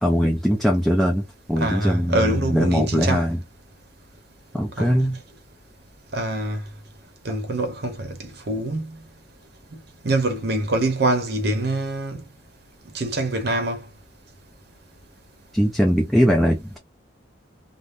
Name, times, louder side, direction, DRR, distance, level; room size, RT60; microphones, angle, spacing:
voice 1, 0.0-3.4 4.5-5.2 15.5-16.8, equal, ahead, 0.4 m, -21 dB
voice 2, 1.6-3.2 4.8-5.0 6.1-6.6 7.2-9.0 9.7-9.8 10.0-12.2 12.9-13.8, right 1 dB, 55° right, 0.7 m, -25 dB
3.3 x 2.0 x 2.5 m
head